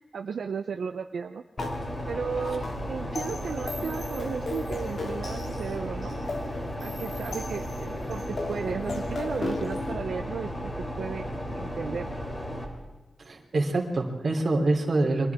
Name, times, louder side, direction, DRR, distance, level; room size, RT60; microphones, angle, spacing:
voice 1, 0.1-1.4 2.1-6.2 6.8-11.3 11.5-12.2, right 6 dB, 75° right, 6 dB, 0.7 m, -34 dB
sound 1, 1.6-9.9, left 2 dB, 50° left, 2.6 m, -37 dB
sound 2, 1.6-12.7, equal, 25° left, 3.1 m, -34 dB
voice 2, 13.2-15.3, right 2 dB, 45° right, 0 dB, 3.5 m, -25 dB
29.5 x 24.5 x 3.7 m, 1.2 s
wide cardioid pair, 180°, 0 cm